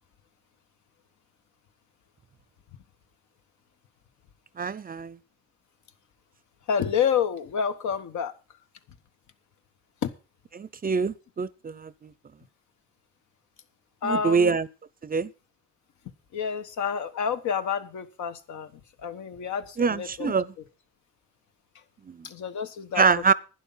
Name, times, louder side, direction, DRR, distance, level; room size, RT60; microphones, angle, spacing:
voice 1, 4.6-5.2 10.6-12.1 14.0-14.7 15.0-15.3 19.8-20.5 22.1-22.2 23.0-23.3, right 5 dB, 30° right, 0.6 m, -24 dB
voice 2, 6.7-8.3 10.0-10.1 14.0-14.6 16.3-20.3 22.2-23.1, left 7 dB, 70° left, 1.3 m, -29 dB
11.5 x 9.9 x 5.6 m
cardioid pair, 90°, 30 cm